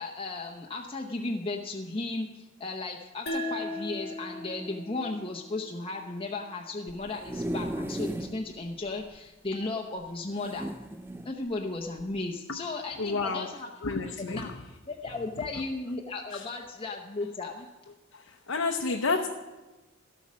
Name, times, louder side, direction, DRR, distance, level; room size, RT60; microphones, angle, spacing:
voice 1, 0.0-10.7 11.2-13.7 14.2-14.5 14.9-17.7, left 3 dB, 25° left, 1 dB, 0.7 m, -35 dB
sound 1, 3.3-6.5, left 1 dB, 50° left, 1.1 m, -38 dB
sound 2, 6.9-8.4 8.9-9.0 9.2-9.3 10.4-11.3 12.0-12.2, right 1 dB, 10° right, 0.3 m, -35 dB
voice 2, 13.0-13.5 13.8-14.5 16.3-16.4 18.1-19.3, left 4 dB, 80° left, 3 dB, 0.8 m, -30 dB
13.0 x 8.4 x 6.2 m, 1.1 s
head